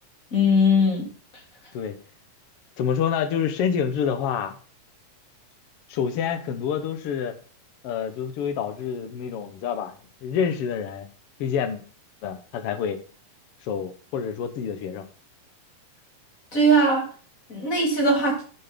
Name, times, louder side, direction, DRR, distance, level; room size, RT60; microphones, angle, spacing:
voice 1, 0.3-1.1 16.5-17.0 17.5-18.4, equal, 25° left, 0 dB, 2.8 m, -19 dB
voice 2, 2.8-4.5 5.9-7.3 7.8-9.9 10.2-11.1 11.4-11.8 12.2-13.0 13.6-15.0, left 7 dB, 65° left, 8 dB, 1.5 m, -27 dB
10.5 x 6.4 x 5.2 m, 0.39 s
omnidirectional pair, 4.0 m